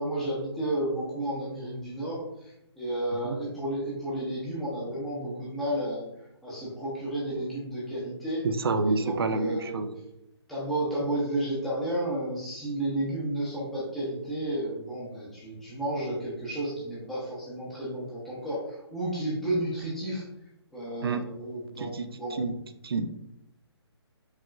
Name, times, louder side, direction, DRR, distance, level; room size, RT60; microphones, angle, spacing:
voice 1, 0.0-6.1 6.4-8.5 8.8-9.8 10.5-20.2 20.7-22.4, right 1 dB, ahead, -9 dB, 0.7 m, -32 dB
voice 2, 8.4-9.9 21.0-21.2 21.7-22.5 22.8-23.1, right 3 dB, 60° right, 9 dB, 0.4 m, -28 dB
4.7 x 2.9 x 2.4 m, 0.83 s
figure-of-eight pair, 140°, 14 cm